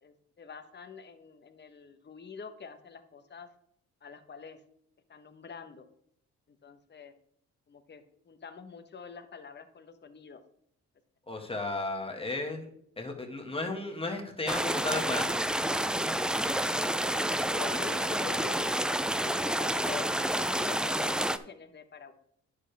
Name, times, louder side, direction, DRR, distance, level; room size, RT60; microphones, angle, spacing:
voice 1, 0.0-3.5 4.0-4.6 5.1-5.8 6.5-7.1 7.7-10.4 17.5-18.8 19.0-22.1, left 6 dB, 35° left, 8 dB, 1.2 m, -46 dB
voice 2, 11.3-12.7 13.0-15.4, left 2 dB, 20° left, 3 dB, 1.8 m, -34 dB
sound 1, 14.5-21.4, right 1 dB, 5° right, 0.4 m, -29 dB
9.7 x 6.9 x 3.4 m, 0.68 s
cardioid pair, 90°, 30 cm